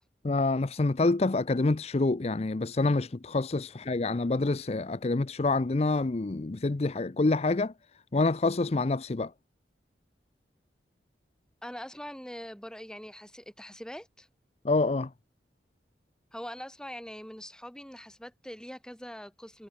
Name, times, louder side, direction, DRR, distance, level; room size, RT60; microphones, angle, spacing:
voice 1, 0.2-7.7 8.1-9.3 14.6-15.1, left 3 dB, 35° left, 0.5 m, -27 dB
voice 2, 11.6-14.3 16.3-19.7, equal, 5° left, 6.4 m, -43 dB
head